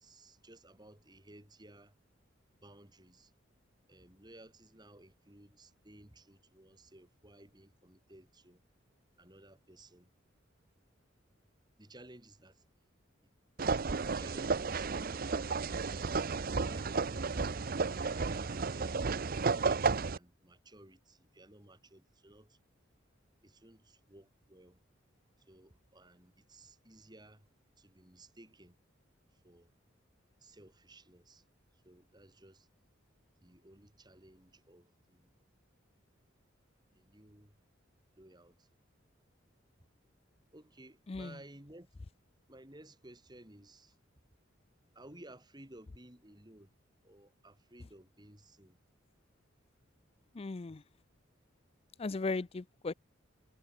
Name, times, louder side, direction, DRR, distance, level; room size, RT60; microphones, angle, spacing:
voice 1, 0.0-1.9 2.6-3.3 3.9-8.6 9.2-10.1 11.8-12.6 13.2-13.3 14.0-15.3 16.0-22.6 23.4-24.8 25.5-27.5 27.8-28.8 29.4-29.7 30.4-31.4 31.8-32.7 33.4-35.3 36.9-37.6 38.1-38.7 40.5-41.9 42.5-44.0 44.9-46.7 47.0-48.8, right 1 dB, 20° right, 3.9 m, -57 dB
sound 1, 13.6-20.2, right 4 dB, 45° right, 0.7 m, -33 dB
voice 2, 41.1-41.4 50.3-50.8 52.0-52.9, left 3 dB, 30° left, 0.4 m, -37 dB
head